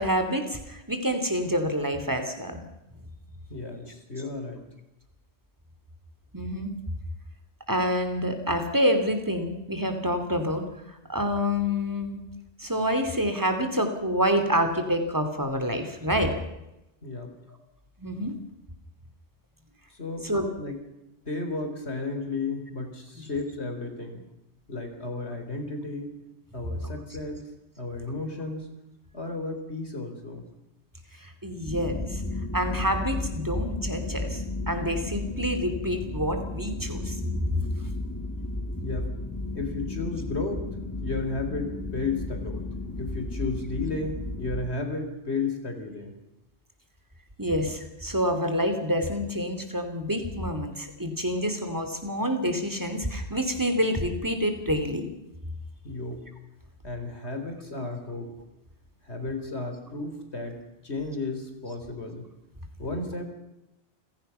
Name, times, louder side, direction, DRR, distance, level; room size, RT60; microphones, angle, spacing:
voice 1, 0.0-2.6 6.3-6.7 7.7-12.2 12.6-16.3 18.0-18.3 20.2-20.5 26.8-26.9 31.2-32.2 32.5-34.4 34.7-37.6 47.4-55.1, equal, 20° right, 6 dB, 3.0 m, -27 dB
voice 2, 3.5-4.7 17.0-17.4 19.9-20.3 20.6-20.8 21.2-24.3 24.7-26.1 26.5-27.5 27.8-28.7 29.1-30.5 38.8-39.1 39.5-40.6 41.0-42.6 42.9-46.1 55.8-56.3 56.8-58.3 59.0-62.3 62.8-63.3, left 3 dB, 80° left, 5 dB, 4.1 m, -33 dB
sound 1, 31.7-44.7, left 2 dB, 15° left, 1.8 m, -34 dB
28.5 x 16.5 x 5.8 m, 0.90 s
omnidirectional pair, 1.1 m